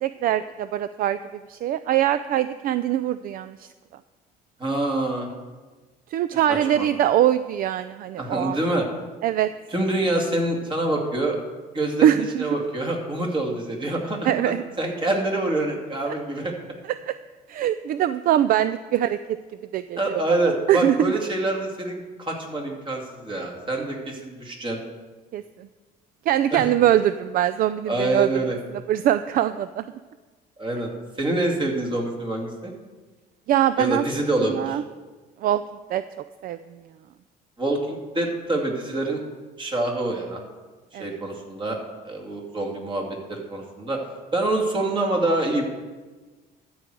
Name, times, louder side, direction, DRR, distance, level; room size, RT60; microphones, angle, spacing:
voice 1, 0.0-3.7 6.1-8.6 9.2-9.5 12.0-12.4 14.3-14.6 16.1-16.2 17.0-17.2 17.5-19.4 19.7-20.2 20.7-21.1 25.3-25.7 26.3-28.6 28.9-29.8 33.5-34.0 34.4-34.8 35.4-35.6 35.9-36.0 36.4-36.6 40.9-41.2, right 11 dB, 60° right, 13 dB, 0.4 m, -22 dB
voice 2, 4.6-5.3 6.5-6.9 8.2-8.9 9.7-11.4 11.7-16.5 20.0-24.8 26.5-26.6 27.9-28.6 30.6-30.9 31.2-32.7 33.8-34.8 37.6-39.2 39.6-40.4 41.0-41.8 42.0-44.0 44.3-45.6, right 2 dB, 30° right, 1 dB, 2.3 m, -26 dB
12.5 x 4.8 x 7.6 m, 1.3 s
cardioid pair, 110°, 17 cm